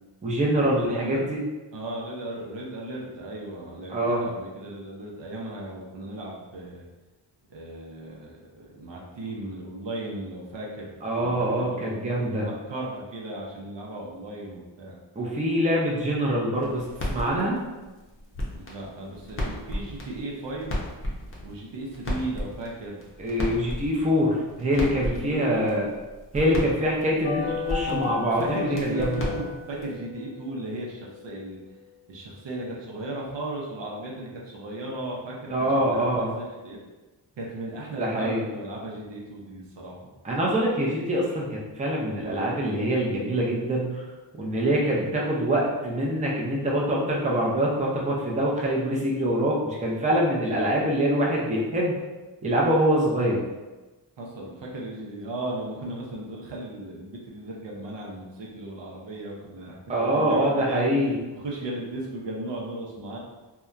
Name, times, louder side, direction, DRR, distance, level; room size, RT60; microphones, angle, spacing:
voice 1, 0.2-1.4 3.9-4.2 11.0-12.5 15.2-17.6 23.2-25.9 26.3-29.1 35.5-36.3 38.0-38.4 40.2-44.0 44.4-52.0 52.4-53.4 59.9-61.2, right 1 dB, 15° right, -4 dB, 0.5 m, -24 dB
voice 2, 0.7-1.3 1.7-6.9 7.5-15.0 18.5-20.8 21.4-23.0 25.1-25.9 27.9-31.6 32.1-35.5 35.9-36.8 37.4-40.1 54.2-59.8 60.1-60.8 61.4-63.2, right 2 dB, 75° right, -3 dB, 0.7 m, -36 dB
sound 1, 16.6-30.0, left 1 dB, 30° left, 0.6 m, -35 dB
sound 2, 27.2-31.5 31.8-31.9, left 7 dB, 70° left, 0.6 m, -35 dB
2.8 x 2.2 x 2.4 m, 1.2 s
wide cardioid pair, 85°, 44 cm